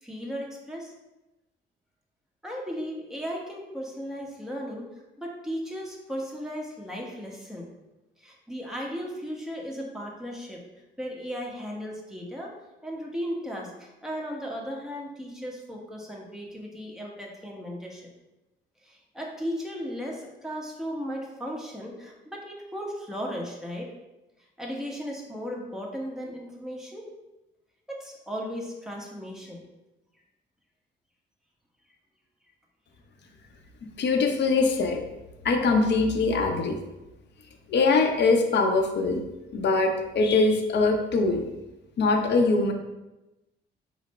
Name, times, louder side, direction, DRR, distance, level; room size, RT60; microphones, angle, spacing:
voice 1, 0.0-0.9 2.4-4.9 5.2-7.7 8.2-10.6 11.0-12.5 12.8-18.0 18.8-23.9 24.6-27.1 27.9-29.7, equal, ahead, -2 dB, 1.0 m, -36 dB
voice 2, 34.0-35.0 35.4-36.8 37.7-39.2 39.5-41.4 42.0-42.7, left 3 dB, 60° left, 4 dB, 0.7 m, -22 dB
5.2 x 2.1 x 4.1 m, 1.0 s
cardioid pair, 90°, 20 cm